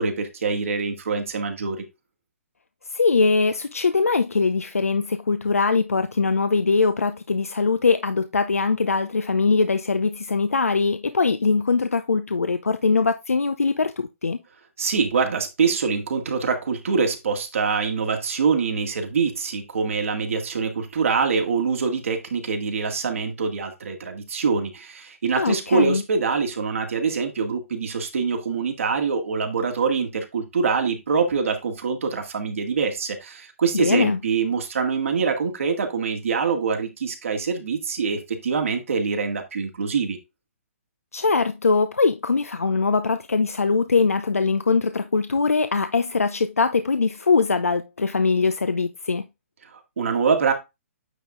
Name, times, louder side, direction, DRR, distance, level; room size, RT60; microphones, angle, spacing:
voice 1, 0.0-1.8 14.8-40.2 49.7-50.5, right 5 dB, 70° right, 2.0 m, -24 dB
voice 2, 2.9-14.4 25.3-26.0 33.7-34.2 41.1-49.2, left 4 dB, 90° left, 0.6 m, -22 dB
9.2 x 4.0 x 3.6 m
hypercardioid pair, 130°, 8 cm